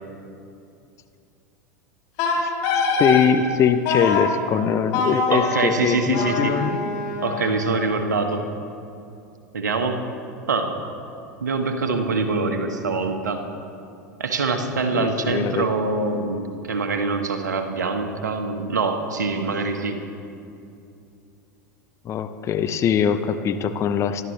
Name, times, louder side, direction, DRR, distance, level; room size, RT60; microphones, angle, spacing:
Wind instrument woodwind instrument, 2.2-3.3 3.9-4.3 4.9-7.9, left 3 dB, 50° left, 4.0 m, -24 dB
voice 1, 2.9-6.8 14.9-15.6 22.0-24.2, left 8 dB, 30° left, 9 dB, 0.8 m, -22 dB
voice 2, 5.3-6.6 7.2-8.4 9.5-10.0 10.5-10.8 11.4-13.4 14.2-20.0, right 3 dB, 75° right, 6 dB, 1.4 m, -24 dB
26.5 x 12.5 x 3.3 m, 2.6 s
figure-of-eight pair, 85°, 10 cm